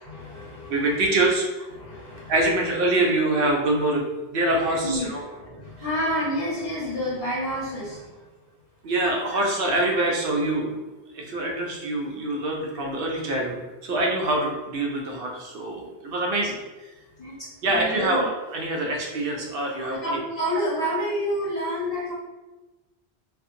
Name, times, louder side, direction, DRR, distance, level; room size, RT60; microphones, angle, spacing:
voice 1, 0.0-0.9 1.7-2.3 4.5-8.2 9.3-9.4 12.3-12.4 17.2-18.3 19.6-22.1, equal, 50° left, -13 dB, 1.2 m, -29 dB
voice 2, 0.7-1.5 2.3-5.2 8.8-10.7 11.1-16.6 17.6-20.2, right 2 dB, 65° right, -1 dB, 0.7 m, -25 dB
2.6 x 2.4 x 2.5 m, 1.1 s
omnidirectional pair, 1.1 m